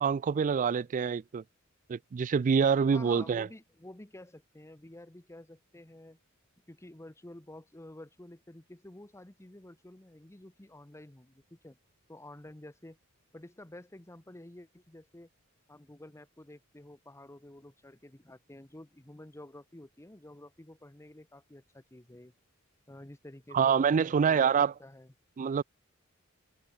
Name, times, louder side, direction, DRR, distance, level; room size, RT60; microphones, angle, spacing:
voice 1, 0.0-1.4 1.9-3.5 23.5-24.7 25.4-25.6, right 6 dB, 40° right, 0.3 m, -26 dB
voice 2, 2.9-6.2 6.7-11.8 12.1-13.0 13.3-15.3 15.7-22.3 22.9-25.1, left 1 dB, 15° left, 1.0 m, -50 dB
head